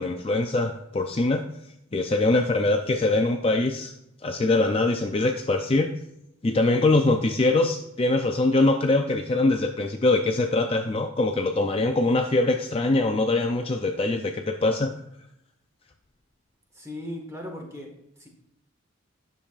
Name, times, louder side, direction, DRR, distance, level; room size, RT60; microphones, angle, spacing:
voice 1, 0.0-1.4 1.9-3.9 4.2-5.9 6.4-14.9, left 2 dB, 25° left, 4 dB, 0.4 m, -23 dB
voice 2, 16.7-17.9 18.2-18.3, left 1 dB, 15° right, 1 dB, 1.6 m, -37 dB
10.5 x 6.9 x 2.4 m, 0.80 s
head